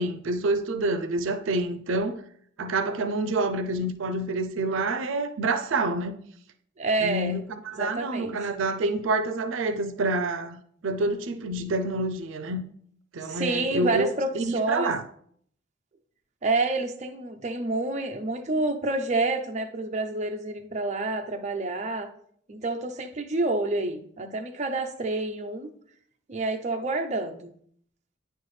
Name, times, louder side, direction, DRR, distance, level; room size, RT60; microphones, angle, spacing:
voice 1, 0.0-2.2 2.6-6.3 7.0-10.6 10.8-12.6 13.1-14.1 14.3-15.0, right 2 dB, 80° right, 0.5 m, -27 dB
voice 2, 6.8-7.4 7.7-8.4 13.3-14.9 16.4-22.1 22.5-25.7 26.3-27.5, right 2 dB, 35° right, 0.5 m, -28 dB
9.2 x 4.5 x 3.2 m
head